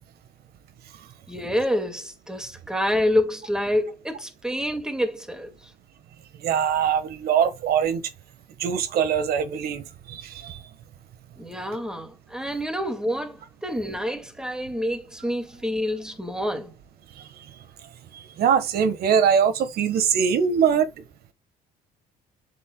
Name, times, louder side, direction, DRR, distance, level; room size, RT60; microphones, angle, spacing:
voice 1, 1.3-5.5 11.4-13.4 13.6-16.7, left 1 dB, 5° right, 2.0 m, -27 dB
voice 2, 6.4-8.0 8.6-10.6 18.4-20.9, right 7 dB, 70° right, 1.4 m, -22 dB
7.4 x 7.3 x 2.3 m
cardioid pair, 110°, 17 cm